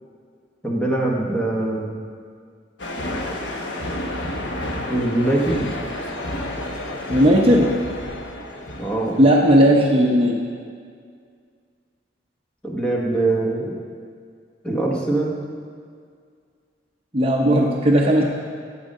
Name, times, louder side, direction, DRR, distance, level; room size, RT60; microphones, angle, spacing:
voice 1, 0.6-1.9 4.9-5.7 8.8-9.2 12.6-13.8 14.6-15.4, right 2 dB, 5° left, -3 dB, 1.4 m, -22 dB
sound 1, 2.8-9.9, left 1 dB, 80° left, 1.2 m, -30 dB
voice 2, 7.1-7.7 9.2-10.4 17.1-18.2, equal, 30° right, 0 dB, 0.8 m, -16 dB
12.5 x 8.1 x 5.4 m, 2.1 s
head